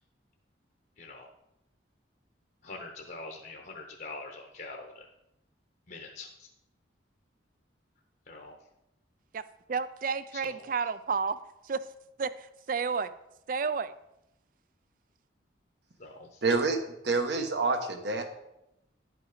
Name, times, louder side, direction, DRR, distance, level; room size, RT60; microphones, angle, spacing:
voice 1, 1.0-1.3 2.6-5.1 5.9-6.5 8.3-8.6 10.3-10.6 16.0-16.4, left 3 dB, 50° left, 1 dB, 0.9 m, -44 dB
voice 2, 9.7-11.4 11.6-11.8 12.2-13.1 13.5-13.9, right 5 dB, 45° right, 15 dB, 0.4 m, -31 dB
voice 3, 16.4-16.8 17.0-18.2, right 3 dB, 60° right, 5 dB, 1.2 m, -27 dB
11.0 x 5.8 x 4.9 m, 0.86 s
head